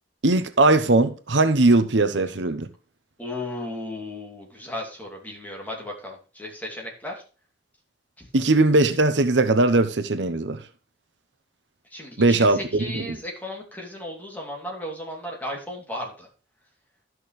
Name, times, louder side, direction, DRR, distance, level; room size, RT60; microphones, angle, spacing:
voice 1, 0.2-2.7 8.3-10.6 12.2-13.2, right 2 dB, 80° right, 0.9 m, -20 dB
voice 2, 3.2-7.1 8.2-8.3 11.9-16.3, left 1 dB, 10° left, 2.9 m, -35 dB
13.0 x 6.2 x 3.2 m
head